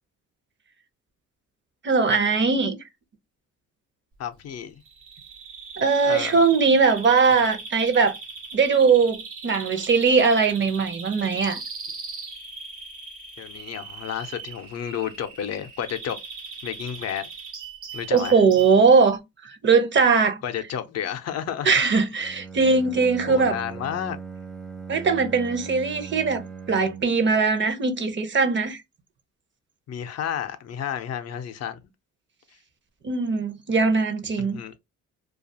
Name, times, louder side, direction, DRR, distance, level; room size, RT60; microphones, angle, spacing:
voice 1, 1.8-2.8 5.8-8.2 8.5-9.2 9.4-11.6 18.1-20.4 21.6-23.6 24.9-26.4 26.7-28.8 33.0-34.6, right 4 dB, 40° right, 0.6 m, -20 dB
voice 2, 4.2-4.8 6.0-6.4 13.4-16.2 16.6-17.3 17.9-18.3 20.4-21.7 23.3-24.2 29.9-31.8 34.4-34.7, left 9 dB, 60° left, 0.5 m, -31 dB
Bird vocalization bird call bird song, 4.8-18.8, right 4 dB, 85° right, 1.0 m, -39 dB
Bowed string instrument, 22.2-27.3, right 5 dB, ahead, 0.3 m, -39 dB
2.4 x 2.3 x 2.7 m
cardioid pair, 90°, 30 cm